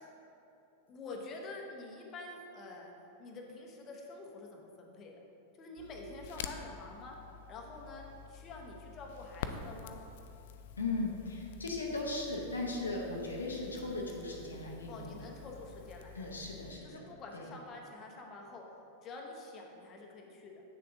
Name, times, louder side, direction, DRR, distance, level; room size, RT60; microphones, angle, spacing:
voice 1, 0.9-2.9 3.2-5.2 5.6-7.2 7.5-10.0 14.9-16.3 16.8-18.7 19.0-20.6, left 2 dB, 30° left, 0 dB, 0.9 m, -47 dB
Crackle, 5.8-16.8, left 7 dB, 55° left, 0.3 m, -48 dB
voice 2, 10.8-15.3 16.1-17.0 17.3-17.5, left 2 dB, 75° left, -1 dB, 0.8 m, -37 dB
8.5 x 6.6 x 2.7 m, 2.8 s
figure-of-eight pair, 90°, 0 cm